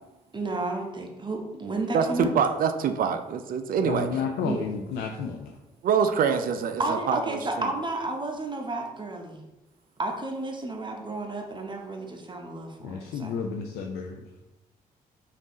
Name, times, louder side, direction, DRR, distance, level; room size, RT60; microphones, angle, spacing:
voice 1, 0.3-2.3 4.4-4.6 6.8-9.4 10.0-13.3, right 2 dB, 25° right, 2 dB, 0.9 m, -32 dB
voice 2, 1.9-4.1 4.5-4.6 5.8-7.7, right 7 dB, 50° right, 8 dB, 0.5 m, -25 dB
voice 3, 3.8-5.6 12.8-14.2, left 5 dB, 60° left, 3 dB, 0.4 m, -31 dB
5.1 x 2.6 x 3.0 m, 1.0 s
hypercardioid pair, 40°, 18 cm